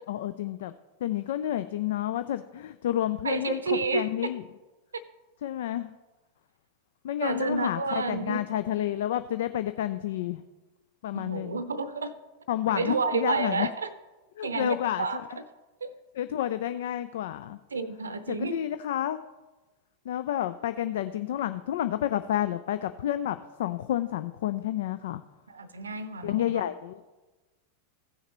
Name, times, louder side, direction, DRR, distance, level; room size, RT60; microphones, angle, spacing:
voice 1, 0.1-0.7 1.0-4.4 5.4-5.9 7.0-10.4 11.0-11.6 12.5-13.7 14.4-15.4 16.1-17.6 18.3-19.2 20.1-25.2 26.2-27.0, left 12 dB, 55° left, 12 dB, 0.3 m, -30 dB
voice 2, 3.2-4.1 4.9-5.0 7.2-8.4 11.1-12.1 12.7-13.9 14.4-15.2 15.8-15.9 17.7-18.6 25.5-26.6, right 4 dB, 75° right, 14 dB, 0.6 m, -30 dB
16.0 x 6.4 x 3.0 m, 1.2 s
figure-of-eight pair, 90°, 0 cm